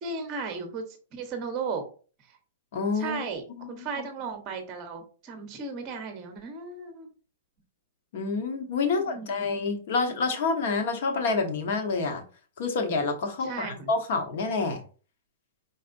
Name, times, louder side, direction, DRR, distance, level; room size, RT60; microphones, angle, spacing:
voice 1, 0.0-1.8 2.9-7.1 8.8-9.5 13.4-13.9, right 4 dB, 20° right, 6 dB, 0.9 m, -36 dB
voice 2, 2.7-3.2 3.5-3.6 8.1-12.2 12.6-14.8, left 4 dB, 45° left, 5 dB, 1.1 m, -28 dB
4.9 x 4.1 x 2.6 m, 0.38 s
supercardioid pair, 180°, 0 cm